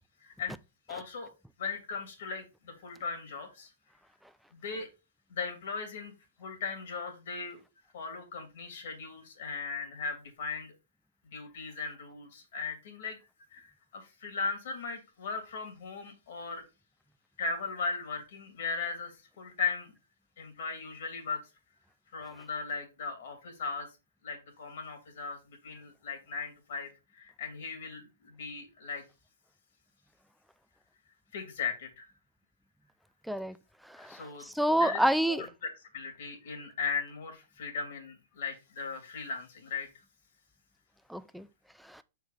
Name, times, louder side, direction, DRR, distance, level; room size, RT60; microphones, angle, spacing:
voice 1, 0.2-0.5 0.9-1.3 1.6-3.7 4.5-4.9 5.3-6.1 6.4-7.6 7.9-10.7 11.3-13.2 13.5-16.6 17.4-19.9 20.4-21.4 22.1-23.9 24.2-29.0 31.3-32.1 34.0-34.5 34.8-39.9, left 5 dB, 60° left, 2.7 m, -38 dB
voice 2, 33.9-35.5 41.1-41.5 41.9-42.0, right 1 dB, ahead, 0.3 m, -28 dB
6.3 x 4.7 x 4.1 m
hypercardioid pair, 165°, 0 cm